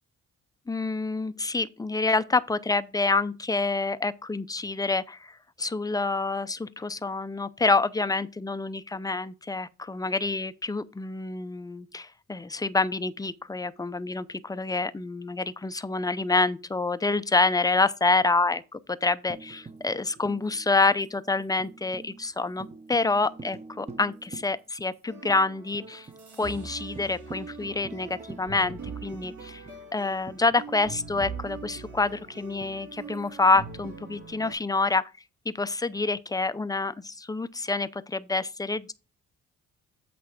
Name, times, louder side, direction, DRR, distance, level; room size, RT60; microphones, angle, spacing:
voice 1, 0.7-26.1 26.4-29.6 29.9-35.0 35.5-38.9, left 3 dB, 10° left, 0.5 m, -27 dB
Tambourine, 19.3-25.0 25.3-25.4 25.7-26.2 26.5-26.7 27.0-31.1 32.6-33.6, right 4 dB, 20° right, 0.8 m, -47 dB
sound 1, 25.1-34.5, right 4 dB, 75° right, 3.4 m, -42 dB
8.2 x 3.3 x 6.4 m
cardioid pair, 90°, 30 cm